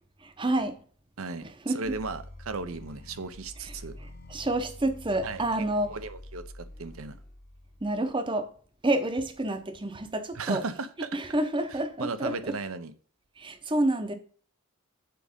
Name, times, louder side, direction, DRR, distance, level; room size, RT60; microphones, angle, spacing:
voice 1, 0.2-0.8 1.7-2.0 3.7-3.8 4.3-6.0 7.8-8.5 8.8-10.6 11.1-12.5 13.4-14.1, right 1 dB, 20° right, 0.8 m, -28 dB
voice 2, 1.2-1.5 1.7-3.9 5.2-7.2 10.3-11.2 12.0-12.9, right 4 dB, 70° right, 0.7 m, -36 dB
sound 1, 1.8-8.1, left 1 dB, 40° left, 0.9 m, -47 dB
7.7 x 4.8 x 5.2 m
head